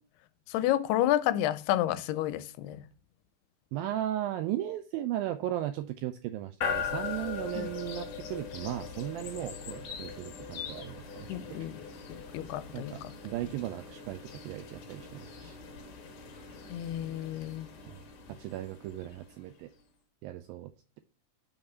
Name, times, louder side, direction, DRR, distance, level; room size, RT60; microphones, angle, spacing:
voice 1, 0.5-2.8 7.6-7.7 11.3-11.8 12.1-13.1 16.7-17.7, left 13 dB, 85° left, 2.6 m, -30 dB
voice 2, 3.7-11.7 12.7-13.0 13.2-15.6 17.9-18.0 18.3-19.7 20.2-20.7, right 13 dB, 85° right, 2.0 m, -36 dB
sound 1, 6.6-19.6, left 6 dB, 65° left, 2.5 m, -40 dB
5.9 x 5.4 x 5.6 m
omnidirectional pair, 4.6 m